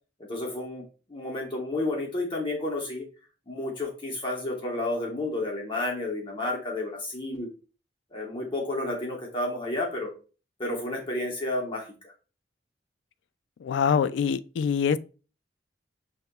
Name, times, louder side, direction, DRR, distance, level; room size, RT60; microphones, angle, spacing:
voice 1, 0.3-3.1 3.5-7.5 8.1-10.1 10.6-12.1, left 2 dB, 30° left, 0.9 m, -31 dB
voice 2, 13.6-15.0, left 7 dB, 80° left, 0.3 m, -24 dB
6.6 x 2.8 x 2.2 m
head